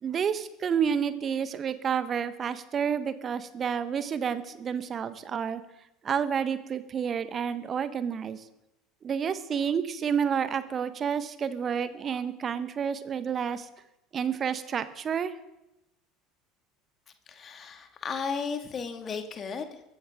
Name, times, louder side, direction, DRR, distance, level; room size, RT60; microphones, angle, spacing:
voice 1, 0.0-5.6 6.0-8.4 9.0-13.7 14.1-15.3, right 7 dB, 35° right, 12 dB, 1.3 m, -30 dB
voice 2, 17.3-19.8, left 5 dB, 30° left, 5 dB, 2.2 m, -35 dB
23.0 x 14.0 x 3.8 m, 0.91 s
figure-of-eight pair, 70°, 0 cm